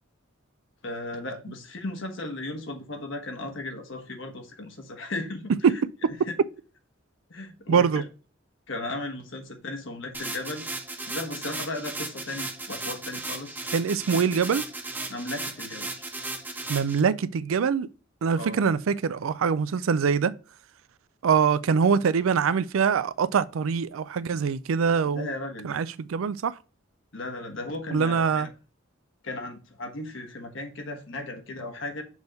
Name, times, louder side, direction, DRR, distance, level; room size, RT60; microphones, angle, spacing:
voice 1, 0.8-5.5 6.3-6.4 7.3-8.0 8.7-10.7 11.0-13.6 15.1-16.0 18.3-18.6 25.1-25.8 27.1-28.5 29.2-32.0, left 2 dB, 70° left, 1.3 m, -36 dB
voice 2, 7.7-8.0 13.7-14.6 16.7-17.9 18.2-20.3 21.2-25.3 25.6-26.5 27.9-28.5, right 6 dB, 90° right, 0.4 m, -23 dB
sound 1, 10.1-17.0, right 2 dB, 10° right, 0.7 m, -36 dB
6.3 x 3.5 x 5.2 m
head